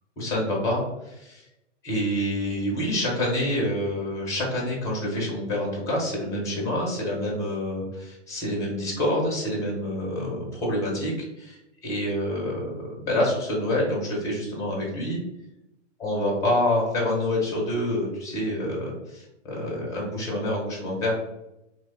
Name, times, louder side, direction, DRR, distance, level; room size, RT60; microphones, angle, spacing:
voice 1, 0.2-1.4 1.8-15.2 16.0-21.2, left 1 dB, 10° left, -3 dB, 0.4 m, -27 dB
2.9 x 2.1 x 3.2 m, 0.90 s
figure-of-eight pair, 120°, 37 cm